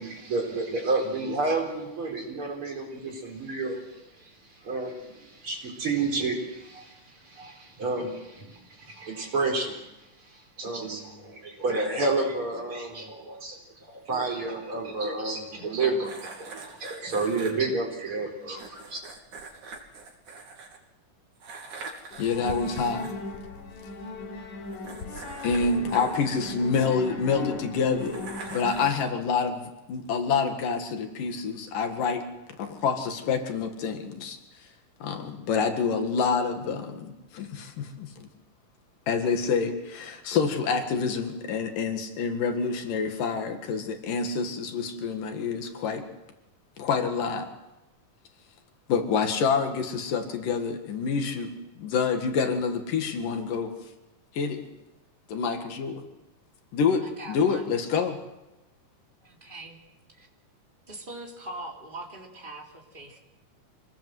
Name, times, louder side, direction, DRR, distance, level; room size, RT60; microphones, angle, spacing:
voice 1, 0.0-3.9 4.2-4.3 4.6-9.9 10.2-13.6 13.9-19.0, right 3 dB, 40° right, 0 dB, 5.0 m, -30 dB
sound 1, 16.0-17.5 18.6-20.8 21.4-23.1 24.7-27.1 28.0-29.1, right 4 dB, 70° right, 4.5 m, -43 dB
sound 2, 22.1-28.9, left 3 dB, 65° left, 4.2 m, -38 dB
voice 2, 22.2-23.1 25.4-32.3 32.6-34.4 35.0-38.3 39.1-46.0 46.8-47.5 48.9-53.7 54.3-54.6 55.3-56.0 56.7-58.2, left 5 dB, 90° left, 6 dB, 3.5 m, -27 dB
voice 3, 57.0-57.7 59.2-59.8 60.1-60.3 60.9-63.2, right 2 dB, 15° right, 0 dB, 3.4 m, -41 dB
26.0 x 19.0 x 7.8 m, 0.98 s
omnidirectional pair, 3.7 m